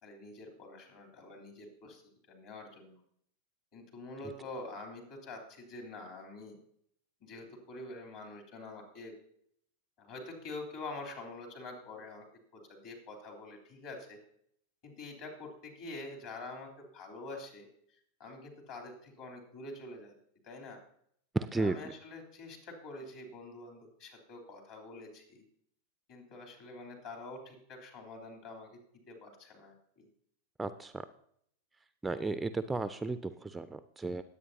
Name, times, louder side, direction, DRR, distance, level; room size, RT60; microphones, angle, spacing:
voice 1, 0.0-2.0 2.3-3.0 3.7-6.6 7.2-9.1 10.0-12.3 12.7-14.2 14.8-20.1 20.4-20.8 21.5-25.4 26.1-28.8 29.1-30.1, left 2 dB, 45° left, 2 dB, 3.3 m, -46 dB
voice 2, 21.3-21.7 30.6-31.0 32.0-34.2, right 3 dB, 10° right, 12 dB, 0.4 m, -34 dB
20.0 x 8.3 x 2.8 m, 0.67 s
figure-of-eight pair, 90°, 0 cm